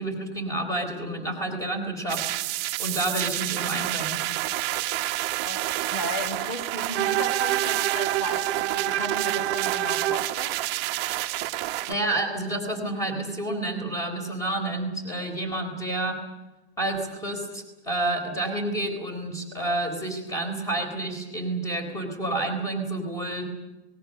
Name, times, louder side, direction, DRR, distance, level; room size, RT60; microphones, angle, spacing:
voice 1, 0.0-4.2 11.9-16.2 16.8-23.5, right 2 dB, 10° left, 6 dB, 4.1 m, -29 dB
sound 1, 2.1-11.9, right 16 dB, 30° right, 1.2 m, -29 dB
voice 2, 5.4-10.6, left 1 dB, 50° left, 10 dB, 3.3 m, -35 dB
Bowed string instrument, 6.9-10.3, right 13 dB, 80° right, 0.7 m, -27 dB
27.5 x 20.5 x 6.7 m, 1.0 s
supercardioid pair, 165°, 33 cm